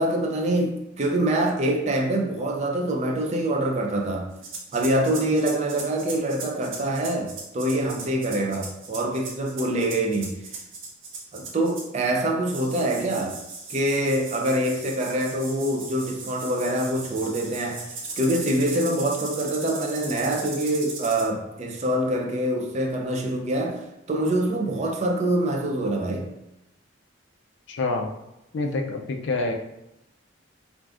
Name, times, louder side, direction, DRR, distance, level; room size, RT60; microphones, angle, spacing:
voice 1, 0.0-4.3 4.7-10.4 11.3-13.4 13.7-26.3, right 1 dB, 35° right, 1 dB, 0.4 m, -25 dB
sound 1, 4.4-12.0 12.5-21.3, right 3 dB, 75° right, 0.6 m, -38 dB
voice 2, 27.7-28.1 28.5-29.5, left 3 dB, 60° left, 3 dB, 0.4 m, -26 dB
3.4 x 2.5 x 2.4 m, 0.87 s
head